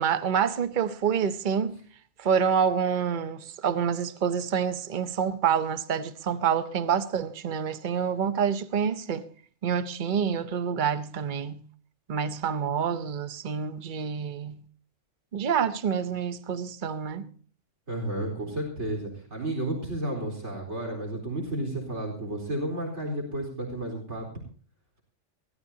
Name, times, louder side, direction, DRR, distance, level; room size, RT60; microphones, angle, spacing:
voice 1, 0.0-1.8 2.2-9.2 9.6-11.6 12.1-14.6 15.3-17.2, right 7 dB, 45° right, 1.0 m, -27 dB
voice 2, 17.9-24.3, right 1 dB, 70° right, 4.6 m, -32 dB
23.0 x 16.5 x 2.8 m
omnidirectional pair, 1.2 m